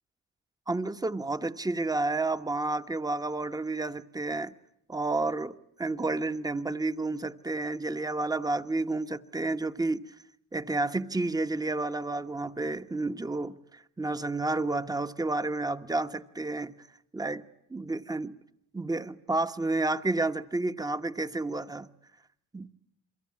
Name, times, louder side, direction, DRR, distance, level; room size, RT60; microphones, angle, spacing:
voice 1, 0.7-4.5 4.9-10.0 10.5-16.7 17.1-17.4 17.7-18.3 18.7-21.9 22.5-22.7, right 2 dB, 10° right, 1.1 m, -30 dB
29.0 x 23.0 x 8.6 m
cardioid pair, 90°, 30 cm